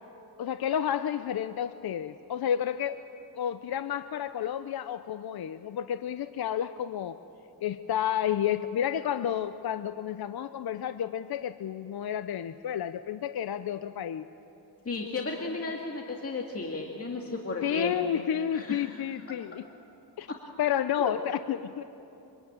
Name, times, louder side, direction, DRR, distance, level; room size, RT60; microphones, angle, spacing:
voice 1, 0.4-3.0 3.3-7.2 7.6-14.3 17.6-19.7 20.2-20.3 20.6-21.8, left 9 dB, 60° left, 11 dB, 0.7 m, -31 dB
voice 2, 14.9-17.9 18.3-19.0 21.0-21.2, left 3 dB, 35° left, 0 dB, 2.2 m, -34 dB
25.0 x 24.5 x 8.9 m, 2.9 s
wide cardioid pair, 130°, 43 cm